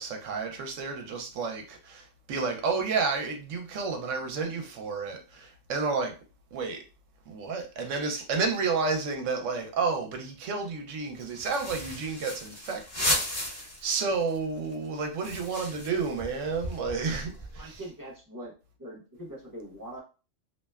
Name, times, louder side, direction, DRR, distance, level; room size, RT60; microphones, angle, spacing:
voice 1, 0.0-6.1 6.5-6.8 7.3-17.8, right 4 dB, 75° right, 0.9 m, -31 dB
sound 1, 11.2-14.0 14.3-14.4 14.6-17.8, left 1 dB, 35° left, 0.9 m, -34 dB
voice 2, 17.6-18.5 18.8-20.0, right 1 dB, 25° right, 0.5 m, -42 dB
2.7 x 2.1 x 2.2 m
omnidirectional pair, 1.3 m